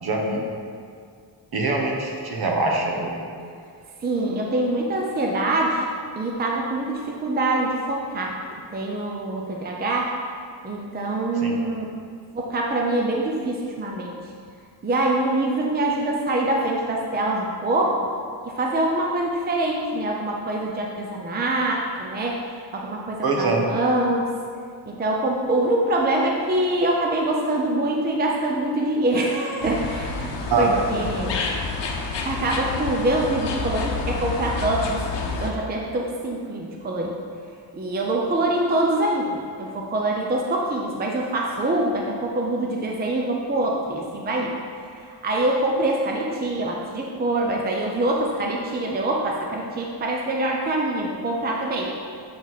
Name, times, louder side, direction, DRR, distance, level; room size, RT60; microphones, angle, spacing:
voice 1, 0.0-0.4 1.5-3.2 11.4-11.5 23.2-23.6 30.5-31.0, right 3 dB, 60° right, 0 dB, 1.1 m, -23 dB
voice 2, 4.0-5.9 6.1-8.4 8.7-10.1 10.6-11.8 12.4-14.2 14.8-18.1 18.4-22.5 22.7-24.3 24.9-30.3 30.6-31.4 32.3-37.2 37.7-44.5 44.9-51.9, right 1 dB, 25° right, -1 dB, 0.5 m, -24 dB
sound 1, 29.6-35.5, left 4 dB, 75° left, 0.8 m, -29 dB
7.5 x 4.5 x 4.0 m, 2.2 s
wide cardioid pair, 150°, 43 cm